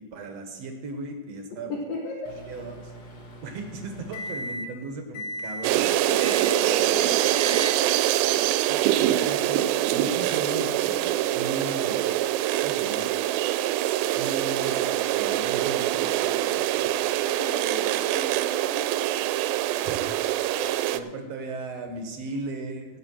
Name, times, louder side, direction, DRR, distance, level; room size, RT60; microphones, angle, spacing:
voice 1, 0.1-1.8 2.5-2.9 3.4-5.9 8.7-12.1 12.6-13.1 14.1-16.9 19.7-20.5 20.9-23.0, right 3 dB, 65° right, 5 dB, 1.8 m, -36 dB
voice 2, 1.7-2.3 6.1-7.8 17.2-19.0 20.5-21.3, left 2 dB, 80° left, -3 dB, 3.3 m, -36 dB
Microwave oven, 2.2-4.8 5.1-5.7 6.2-6.8 7.2-7.8, equal, 60° left, 1.0 m, -38 dB
sound 1, 5.6-21.0, right 13 dB, 85° right, 2.3 m, -24 dB
16.5 x 6.5 x 6.2 m, 1.2 s
omnidirectional pair, 4.1 m